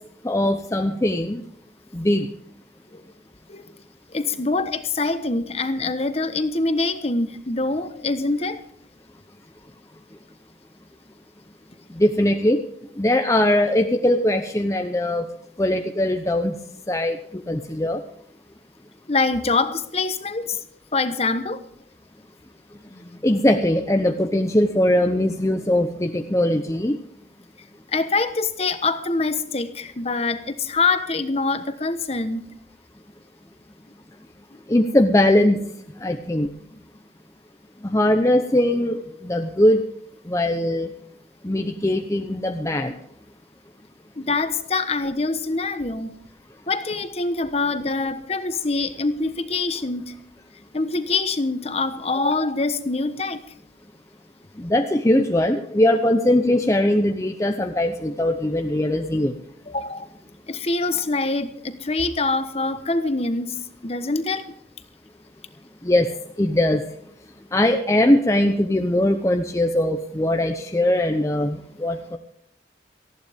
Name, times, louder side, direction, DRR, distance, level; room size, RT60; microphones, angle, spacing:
voice 1, 0.2-1.4 1.9-2.3 11.9-12.6 13.0-15.2 15.6-16.5 16.9-18.0 23.2-27.0 34.7-35.6 36.0-36.5 37.8-39.8 40.3-40.9 41.4-42.9 54.6-59.3 65.8-66.1 66.4-66.8 67.5-72.2, left 1 dB, 15° left, 5 dB, 0.8 m, -20 dB
voice 2, 4.1-8.6 19.1-20.6 20.9-21.6 23.0-23.1 27.9-32.5 44.2-46.2 46.7-50.1 50.7-53.4 59.7-60.1 60.5-63.6 63.8-64.5, left 3 dB, 35° left, 10 dB, 1.2 m, -24 dB
19.0 x 14.5 x 3.6 m, 0.72 s
head